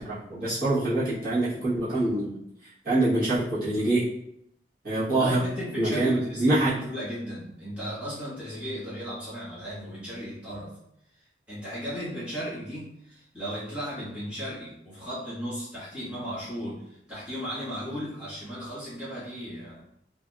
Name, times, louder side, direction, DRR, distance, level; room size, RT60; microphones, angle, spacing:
voice 1, 0.0-2.3 2.8-4.0 4.8-5.4 5.8-6.7, right 2 dB, 55° right, -11 dB, 1.1 m, -25 dB
voice 2, 5.1-10.8 11.5-19.8, equal, 5° right, -11 dB, 1.4 m, -36 dB
3.4 x 2.4 x 2.3 m, 0.78 s
head